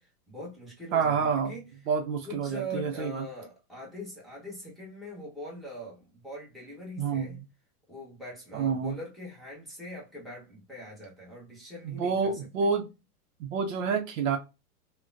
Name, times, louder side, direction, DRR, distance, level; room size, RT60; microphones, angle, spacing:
voice 1, 0.0-1.6 2.3-7.4 7.9-12.4, equal, ahead, 1.0 m, -42 dB
voice 2, 0.9-1.6 1.9-3.2 7.0-7.4 8.5-8.9 11.8-12.9 13.4-14.4, right 5 dB, 60° right, 0.7 m, -28 dB
3.5 x 2.2 x 2.5 m
hypercardioid pair, 120°, 46 cm